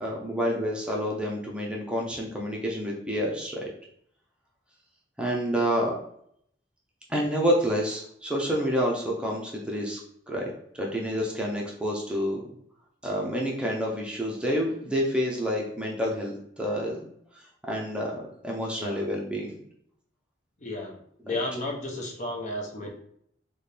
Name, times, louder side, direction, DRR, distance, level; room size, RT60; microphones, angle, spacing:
voice 1, 0.0-3.7 5.2-6.0 7.1-10.0 10.3-12.4 13.0-17.1 17.7-19.5, equal, 5° right, -2 dB, 0.5 m, -28 dB
voice 2, 18.8-19.1 20.6-22.9, left 1 dB, 40° left, 1 dB, 0.7 m, -33 dB
4.1 x 2.2 x 3.3 m, 0.68 s
head